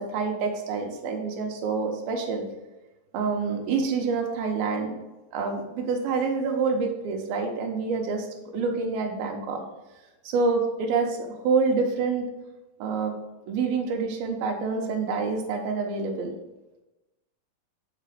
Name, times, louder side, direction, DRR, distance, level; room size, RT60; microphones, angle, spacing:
voice 1, 0.0-2.4 3.1-5.0 5.3-9.6 10.2-12.3 12.8-13.1 13.5-16.3, right 4 dB, 85° right, 2 dB, 3.0 m, -27 dB
8.0 x 4.7 x 5.1 m, 1.1 s
omnidirectional pair, 4.2 m